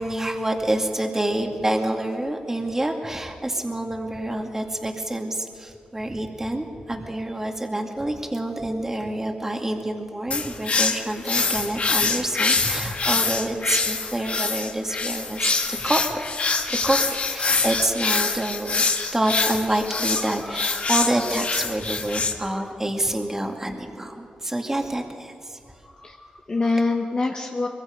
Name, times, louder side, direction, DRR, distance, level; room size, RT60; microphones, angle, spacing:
voice 1, 0.0-16.2 16.4-17.0 17.3-18.8 19.1-25.6, right 1 dB, 15° right, 2 dB, 2.3 m, -27 dB
sound 1, 10.3-22.3, left 4 dB, 50° left, 1.6 m, -25 dB
voice 2, 20.5-20.9 22.5-22.7 25.9-27.7, left 3 dB, 35° left, 2 dB, 1.3 m, -26 dB
23.0 x 23.0 x 5.2 m, 2.3 s
cardioid pair, 90°, 3 cm